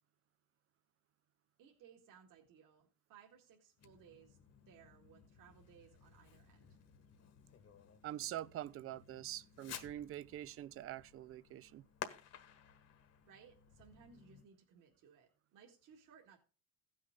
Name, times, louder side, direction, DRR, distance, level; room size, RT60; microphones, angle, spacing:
voice 1, 1.6-6.8 13.2-16.4, right 7 dB, 60° right, 2.2 m, -63 dB
Fireworks, 3.8-14.5, left 8 dB, 45° left, 1.5 m, -55 dB
voice 2, 8.0-11.8, right 13 dB, 40° right, 0.4 m, -45 dB
15.5 x 6.5 x 3.8 m
cardioid pair, 125°, 36 cm